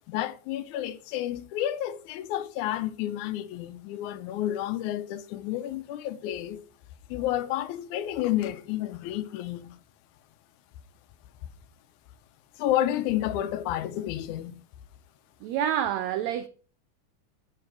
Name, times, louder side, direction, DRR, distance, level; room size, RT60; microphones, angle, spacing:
voice 1, 0.1-6.6 7.1-9.8 12.6-14.6, left 12 dB, 80° left, 1.9 m, -30 dB
voice 2, 15.4-16.5, right 10 dB, 90° right, 1.5 m, -28 dB
7.8 x 4.8 x 4.6 m
omnidirectional pair, 3.7 m